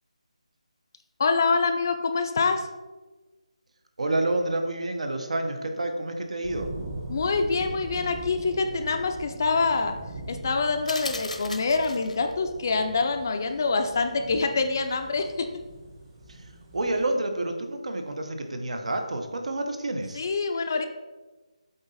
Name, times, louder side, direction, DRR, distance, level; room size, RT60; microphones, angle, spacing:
voice 1, 1.2-2.7 7.1-9.9 10.3-15.5 20.2-20.8, left 4 dB, 30° left, 6 dB, 0.4 m, -25 dB
voice 2, 4.0-6.7 16.3-16.4 16.7-20.2, right 2 dB, 65° right, 5 dB, 1.0 m, -29 dB
sound 1, 6.4-17.0, right 2 dB, 20° right, 1.0 m, -41 dB
sound 2, 10.9-12.3, left 3 dB, 80° left, 0.9 m, -36 dB
7.9 x 3.9 x 4.0 m, 1.2 s
figure-of-eight pair, 170°, 4 cm